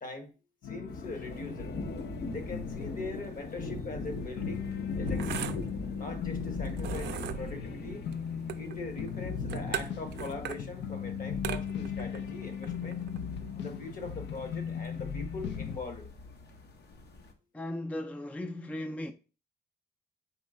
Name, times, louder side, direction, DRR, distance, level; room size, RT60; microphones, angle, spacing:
voice 1, 0.0-0.3 0.6-1.7 2.3-4.7 5.0-5.7 6.0-8.1 8.5-13.0 13.6-16.1, left 3 dB, 50° left, 1.1 m, -41 dB
sound 1, 0.6-4.0 4.2-15.8, left 7 dB, 85° left, 0.5 m, -39 dB
sound 2, 0.9-17.3, left 3 dB, 70° left, 1.0 m, -40 dB
sound 3, 4.0-13.9, right 11 dB, 70° right, 0.4 m, -42 dB
voice 2, 17.5-19.1, left 1 dB, 5° left, 0.4 m, -37 dB
4.6 x 3.2 x 3.6 m
cardioid pair, 100°, 18 cm